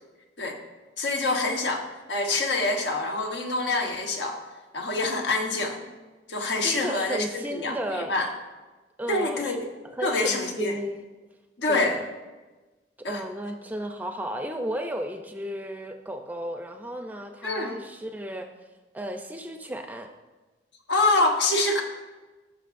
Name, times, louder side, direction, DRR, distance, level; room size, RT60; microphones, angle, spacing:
voice 1, 1.0-4.4 4.7-5.8 6.3-8.3 9.1-9.6 10.0-10.8 11.6-12.0 13.0-13.2 17.4-17.7 20.9-21.8, left 2 dB, 80° left, 2 dB, 1.2 m, -26 dB
voice 2, 6.6-8.2 9.0-9.6 10.0-11.0 11.7-12.0 13.1-18.5 18.9-20.1, equal, 10° right, 5 dB, 0.4 m, -34 dB
15.0 x 5.9 x 2.5 m, 1.2 s
head